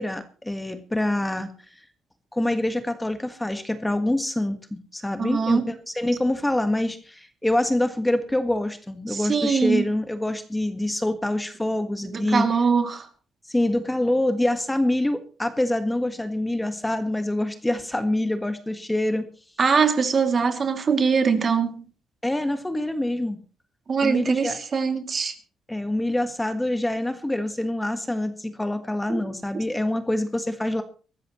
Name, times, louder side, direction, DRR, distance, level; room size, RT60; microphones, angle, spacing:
voice 1, 0.0-1.5 2.3-12.5 13.5-19.3 22.2-23.4 24.0-24.6 25.7-30.8, left 1 dB, 10° left, 1.6 m, -25 dB
voice 2, 5.2-5.7 9.1-9.9 12.1-13.1 19.6-21.8 23.9-25.3 29.1-29.2, right 5 dB, 45° right, 2.6 m, -22 dB
23.0 x 13.0 x 3.1 m
cardioid pair, 90°, 0 cm